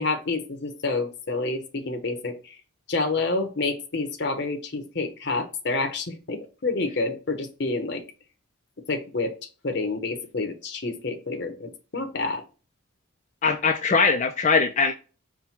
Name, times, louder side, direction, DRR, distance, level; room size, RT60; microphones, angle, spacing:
voice 1, 0.0-2.6 2.9-8.0 8.9-9.3 9.6-12.4, left 3 dB, 55° left, 0.8 m, -28 dB
voice 2, 13.4-14.9, left 4 dB, 35° left, 0.4 m, -21 dB
5.6 x 2.2 x 4.3 m
head